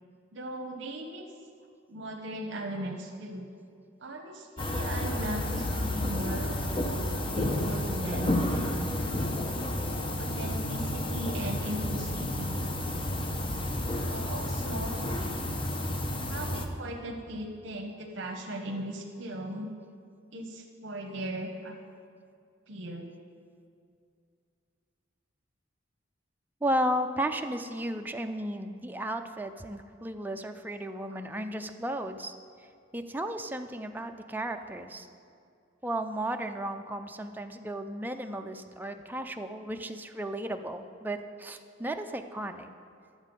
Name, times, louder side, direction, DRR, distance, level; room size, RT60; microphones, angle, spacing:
voice 1, 0.3-1.3 1.9-3.5 4.0-8.3 8.6-9.0 10.2-12.6 14.1-15.2 16.2-19.7 20.3-21.8 22.7-23.1 31.1-31.2, right 1 dB, 70° right, 3 dB, 0.8 m, -38 dB
sound 1, 4.6-16.7, left 1 dB, 25° left, 0.8 m, -31 dB
voice 2, 26.6-32.3 32.9-35.1 35.8-42.7, right 1 dB, 10° right, 5 dB, 0.4 m, -34 dB
11.5 x 7.4 x 5.2 m, 2.3 s
head